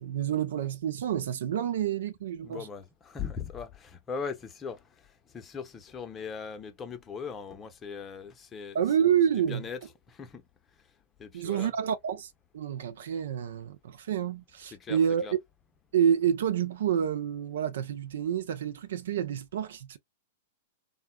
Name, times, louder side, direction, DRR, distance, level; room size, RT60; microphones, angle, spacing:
voice 1, 0.0-2.7 8.7-9.6 11.3-15.3 15.9-20.0, right 9 dB, 70° right, 0.5 m, -28 dB
voice 2, 2.4-4.8 5.3-8.8 9.3-9.8 10.1-10.4 11.2-11.7 14.7-15.3, left 6 dB, 25° left, 0.7 m, -39 dB
3.7 x 2.2 x 2.2 m
hypercardioid pair, 105°, 0 cm